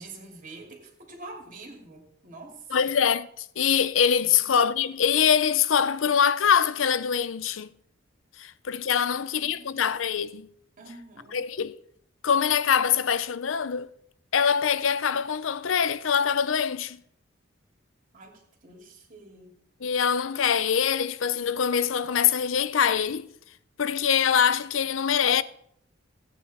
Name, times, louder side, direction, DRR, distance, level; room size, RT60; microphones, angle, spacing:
voice 1, 0.0-2.7 4.2-4.5 9.0-9.8 10.8-11.4 18.1-19.6, right 2 dB, 45° right, 2.7 m, -46 dB
voice 2, 2.7-7.7 8.4-10.5 11.3-11.8 12.2-13.9 14.3-17.0 19.8-23.3 23.8-25.4, left 7 dB, 75° left, 0.6 m, -24 dB
17.0 x 9.0 x 4.2 m
head